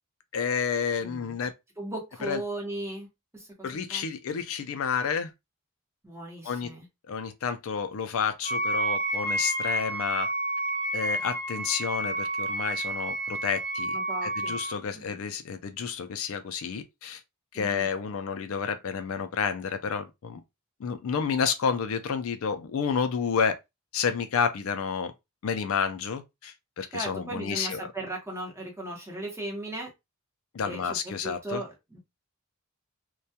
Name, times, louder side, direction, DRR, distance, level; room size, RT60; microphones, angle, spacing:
voice 1, 0.3-1.5 2.2-2.4 3.6-5.3 6.4-6.8 7.1-10.3 10.9-17.2 17.5-20.4 20.8-23.6 23.9-25.1 25.4-27.9 30.5-31.6, left 6 dB, 65° left, 0.4 m, -30 dB
voice 2, 1.0-1.4 1.8-3.1 3.3-4.1 6.0-6.9 13.9-14.6 14.9-15.2 17.5-17.9 26.9-29.9 30.6-32.0, right 1 dB, 10° right, 0.8 m, -37 dB
Wind instrument woodwind instrument, 8.4-14.8, right 1 dB, 45° right, 0.6 m, -30 dB
2.2 x 2.2 x 2.7 m
head